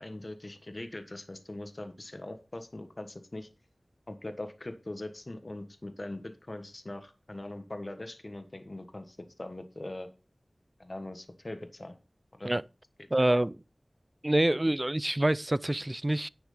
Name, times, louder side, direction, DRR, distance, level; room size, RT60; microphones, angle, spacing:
voice 1, 0.0-3.5 4.1-10.1 10.8-12.0 12.3-12.5 13.2-13.4, left 1 dB, 45° left, 1.4 m, -41 dB
voice 2, 13.1-13.5 14.2-16.3, right 1 dB, 30° right, 0.4 m, -26 dB
10.5 x 6.4 x 5.0 m
wide cardioid pair, 50°, 0 cm